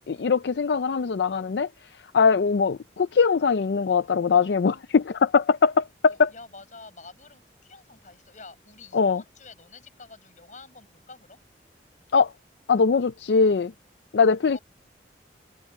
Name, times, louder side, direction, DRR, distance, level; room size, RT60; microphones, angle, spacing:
voice 1, 0.1-1.7 2.1-6.3 8.9-9.2 12.1-12.3 12.7-13.7 14.1-14.6, left 5 dB, 65° left, 0.4 m, -21 dB
voice 2, 6.1-11.4 14.5-14.6, left 3 dB, 40° left, 6.9 m, -48 dB
head